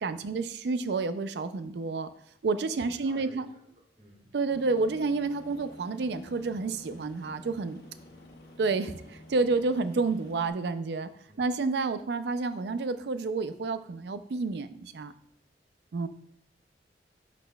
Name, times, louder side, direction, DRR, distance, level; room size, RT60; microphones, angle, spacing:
voice 1, 0.0-2.1 2.4-3.5 4.3-7.8 8.6-11.1 11.4-15.1 15.9-16.1, right 3 dB, 65° right, 11 dB, 0.4 m, -29 dB
voice 2, 2.8-3.7 4.0-4.3 11.3-11.5, equal, 40° right, -1 dB, 1.7 m, -53 dB
Aircraft, 4.5-10.5, left 1 dB, 60° left, 1.2 m, -51 dB
11.5 x 4.1 x 2.3 m, 0.70 s
head